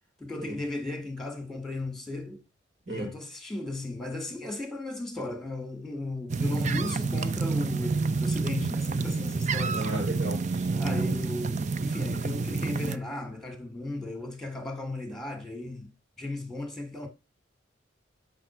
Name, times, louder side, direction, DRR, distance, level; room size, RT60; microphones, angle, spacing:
voice 1, 0.2-2.4 2.9-10.0 10.7-17.1, left 2 dB, ahead, 2.0 m, -36 dB
sound 1, 6.3-13.0, right 4 dB, 40° right, 0.5 m, -28 dB
voice 2, 9.7-10.7, right 1 dB, 80° right, 4.4 m, -34 dB
8.5 x 5.8 x 4.5 m
head